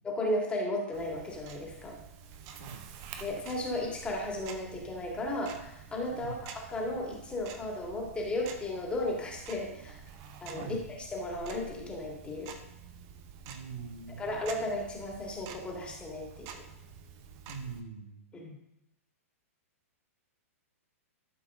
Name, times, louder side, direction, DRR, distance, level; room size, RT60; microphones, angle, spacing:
voice 1, 0.0-2.0 3.2-10.0 10.4-10.8 11.1-12.5 14.2-16.6 18.3-18.6, left 1 dB, 15° left, -1 dB, 2.2 m, -35 dB
Tick-tock, 0.9-17.8, right 6 dB, 40° right, 0.9 m, -48 dB
voice 2, 2.6-2.9 6.1-6.4 10.6-10.9 13.5-14.4 17.5-18.2, right 5 dB, 75° right, 1 dB, 2.1 m, -43 dB
12.5 x 5.5 x 3.7 m, 0.87 s
hypercardioid pair, 135°, 8 cm